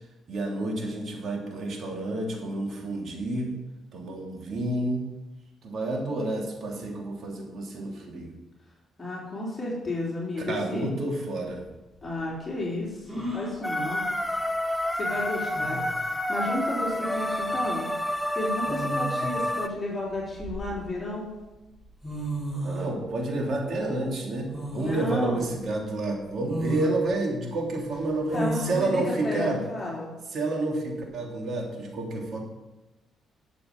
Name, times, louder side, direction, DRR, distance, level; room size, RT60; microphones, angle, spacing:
voice 1, 0.3-3.6 3.9-5.1 5.6-8.4 10.5-11.6 22.6-29.6 30.3-32.4, right 2 dB, 60° right, 0 dB, 3.0 m, -29 dB
voice 2, 9.0-10.9 12.0-14.0 14.9-17.9 18.3-21.3 24.7-25.5 28.3-30.1, left 1 dB, 25° left, -5 dB, 3.8 m, -32 dB
sound 1, 13.1-13.6 15.1-15.2 15.5-16.0 17.4-17.6 18.7-19.4 20.1-21.1 21.8-21.9 22.0-22.9 24.5-25.1 25.6-25.7 26.4-26.9 28.3-28.9, right 1 dB, 15° right, 3.7 m, -33 dB
sound 2, 13.6-19.7, left 1 dB, 5° left, 0.7 m, -29 dB
11.5 x 7.7 x 5.4 m, 1.1 s
cardioid pair, 90°, 0 cm